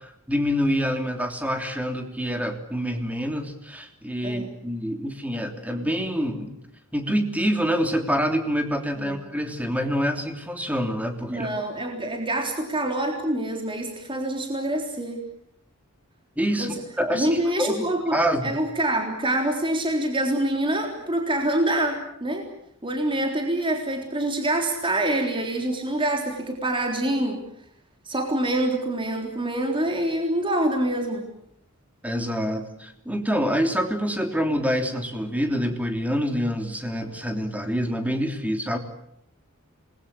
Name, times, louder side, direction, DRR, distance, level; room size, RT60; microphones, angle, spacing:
voice 1, 0.0-6.5 6.9-11.5 16.4-17.9 18.1-18.5 32.0-38.8, equal, 5° right, 5 dB, 3.1 m, -26 dB
voice 2, 11.3-15.2 16.6-16.8 17.1-22.5 22.8-27.4 28.1-31.3, right 1 dB, 25° right, 2 dB, 3.7 m, -26 dB
27.5 x 21.5 x 8.4 m, 0.73 s
head